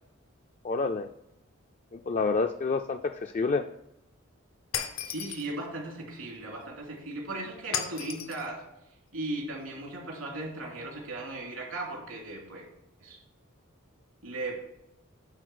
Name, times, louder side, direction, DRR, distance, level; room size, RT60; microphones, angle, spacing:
voice 1, 0.6-1.1 1.9-3.7, left 4 dB, 35° left, 7 dB, 0.3 m, -28 dB
Shatter, 4.7-5.5 7.7-8.5, left 8 dB, 85° left, 0.8 m, -34 dB
voice 2, 5.0-8.6 9.1-12.6 13.0-13.2 14.2-14.6, right 2 dB, 85° right, -2 dB, 3.0 m, -37 dB
9.8 x 3.9 x 6.2 m, 0.84 s
head